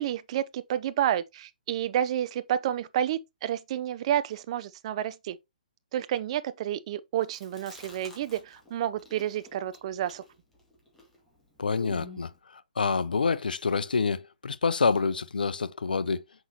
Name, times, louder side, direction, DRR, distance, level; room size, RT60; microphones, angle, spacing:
voice 1, 0.0-5.4 5.9-10.2, right 11 dB, 45° right, 0.6 m, -30 dB
Chewing mastication, 7.2-8.7 9.0-12.4, left 2 dB, 10° left, 2.2 m, -47 dB
voice 2, 11.6-16.2, left 5 dB, 85° left, 0.6 m, -27 dB
6.0 x 5.4 x 2.9 m
hypercardioid pair, 140°, 5 cm